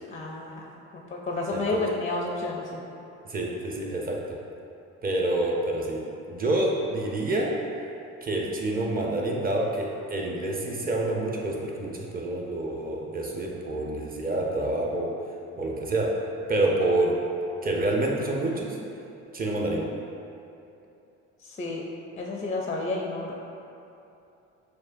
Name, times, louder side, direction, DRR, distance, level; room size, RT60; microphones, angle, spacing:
voice 1, 0.1-0.6 0.9-2.8 21.4-21.8 22.2-23.3, left 2 dB, 20° left, -1 dB, 0.4 m, -31 dB
voice 2, 1.5-1.9 3.3-4.2 5.0-6.0 6.3-7.5 8.2-15.1 15.6-16.1 16.5-17.1 17.6-18.8 19.3-19.8, right 2 dB, 25° right, -1 dB, 0.7 m, -27 dB
6.2 x 2.3 x 2.6 m, 2.8 s
supercardioid pair, 75°, 32 cm